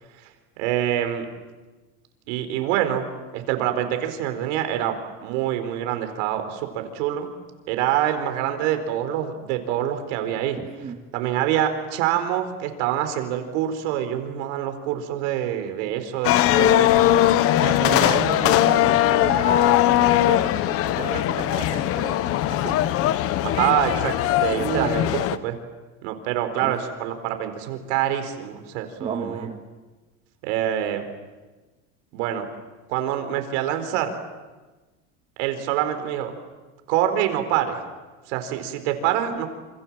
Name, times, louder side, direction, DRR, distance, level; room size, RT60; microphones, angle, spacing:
voice 1, 0.6-1.3 2.3-3.1 3.3-7.3 7.7-10.6 11.1-16.9 23.4-24.1 24.4-25.6 26.0-29.5 30.4-31.0 32.1-32.5 32.9-34.1 35.4-36.3 36.9-37.8 38.3-39.5, right 11 dB, 80° right, 7 dB, 4.5 m, -25 dB
voice 2, 10.7-11.0 17.6-20.4 20.7-22.8 24.6-25.0 26.6-26.7 29.0-29.6, right 5 dB, 20° right, 4 dB, 2.1 m, -32 dB
sound 1, 16.2-25.4, left 13 dB, 40° left, 1.0 m, -20 dB
28.0 x 27.5 x 7.6 m, 1.2 s
cardioid pair, 160°, 33 cm